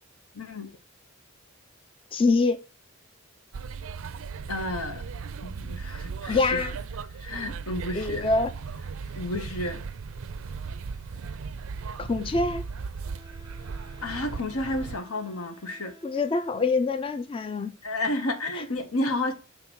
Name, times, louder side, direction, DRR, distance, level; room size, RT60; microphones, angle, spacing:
voice 1, 0.3-0.7 4.5-5.0 5.4-6.5 7.2-8.3 9.1-9.8 14.0-15.9 17.8-19.3, left 1 dB, 85° left, 1.3 m, -31 dB
voice 2, 2.1-2.6 6.3-6.7 7.9-8.5 12.0-12.6 16.0-17.7 18.6-18.7, left 3 dB, 25° left, 0.3 m, -25 dB
sound 1, 3.5-15.0, right 5 dB, 70° right, 0.4 m, -37 dB
Wind instrument woodwind instrument, 13.0-17.1, equal, 45° left, 3.3 m, -53 dB
6.0 x 3.8 x 6.1 m
head